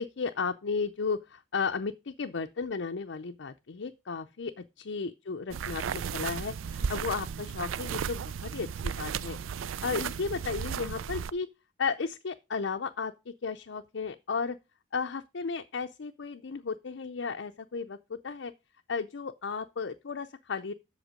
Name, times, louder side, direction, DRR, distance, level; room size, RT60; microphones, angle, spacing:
voice 1, 0.0-4.5 4.8-11.5 11.8-14.6 14.9-18.5 18.9-20.7, left 5 dB, 65° left, 0.5 m, -34 dB
sound 1, 5.5-11.3, right 7 dB, 85° right, 0.4 m, -35 dB
8.0 x 6.9 x 5.0 m
head